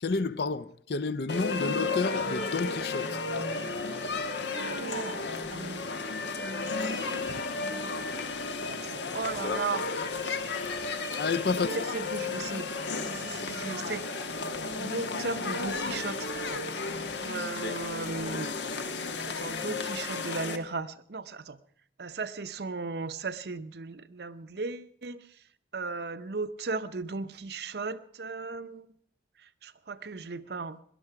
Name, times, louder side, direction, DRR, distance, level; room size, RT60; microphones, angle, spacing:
voice 1, 0.0-3.2 11.1-11.7, left 4 dB, 65° left, 0.6 m, -30 dB
sound 1, 1.3-20.6, left 3 dB, 85° left, 1.3 m, -33 dB
voice 2, 4.4-5.8 7.9-8.0 8.6-9.8 11.5-12.7 13.0-14.0 14.8-16.7 17.2-18.5 19.3-21.6 22.0-25.2 25.7-28.9 29.6-30.8, right 4 dB, 65° right, 0.7 m, -36 dB
18.0 x 11.0 x 5.9 m
head